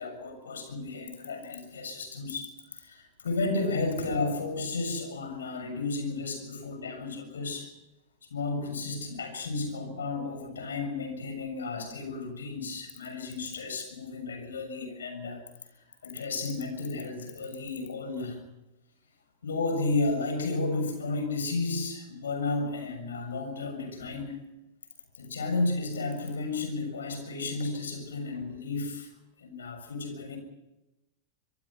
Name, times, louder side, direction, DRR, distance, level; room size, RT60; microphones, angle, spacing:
voice 1, 0.0-7.7 8.3-15.4 16.0-18.4 19.4-24.5 25.1-29.1 29.4-30.4, left 3 dB, 70° left, 7 dB, 6.8 m, -33 dB
26.0 x 22.5 x 5.7 m, 0.93 s
figure-of-eight pair, 90°, 0 cm